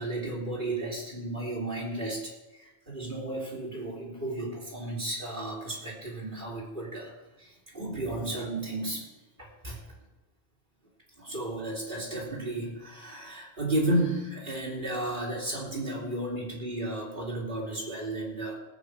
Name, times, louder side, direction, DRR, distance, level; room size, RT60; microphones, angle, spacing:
voice 1, 0.0-9.1 9.4-9.8 11.2-18.6, right 1 dB, 45° right, -4 dB, 3.3 m, -33 dB
19.0 x 8.4 x 4.8 m, 1.0 s
omnidirectional pair, 1.2 m